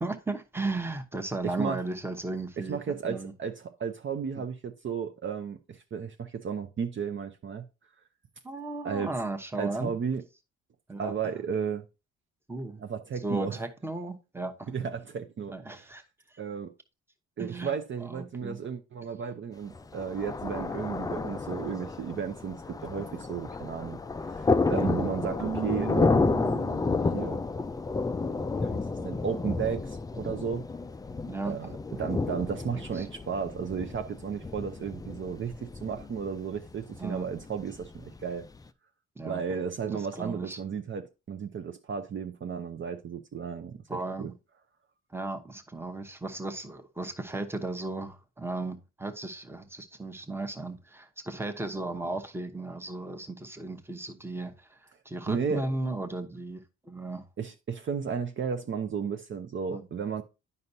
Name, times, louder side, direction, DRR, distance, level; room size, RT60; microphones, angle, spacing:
voice 1, 0.0-2.8 3.0-3.3 4.3-4.4 8.4-9.9 10.9-11.1 12.5-12.8 13.2-14.7 15.5-16.0 16.3-16.4 17.4-17.7 18.0-18.6 24.7-25.0 29.0-29.1 31.3-31.8 32.7-33.1 37.0-37.3 39.2-39.4 39.9-40.6 43.9-44.3 45.1-54.8 55.0-57.2 59.7-59.9, right 2 dB, 10° right, 0.9 m, -35 dB
voice 2, 1.4-1.8 2.6-7.6 8.8-9.1 9.6-10.2 11.0-11.8 12.8-13.6 14.7-15.8 16.4-16.7 17.4-24.0 24.3-26.3 27.1-27.4 28.4-30.7 31.4-31.7 32.0-38.5 39.2-44.3 55.3-55.7 57.4-60.2, right 6 dB, 40° right, 0.6 m, -34 dB
Thunder, 19.7-38.6, left 3 dB, 15° left, 0.3 m, -31 dB
Keyboard (musical), 25.4-27.4, right 8 dB, 70° right, 1.2 m, -36 dB
9.4 x 5.4 x 2.7 m
cardioid pair, 90°, 30 cm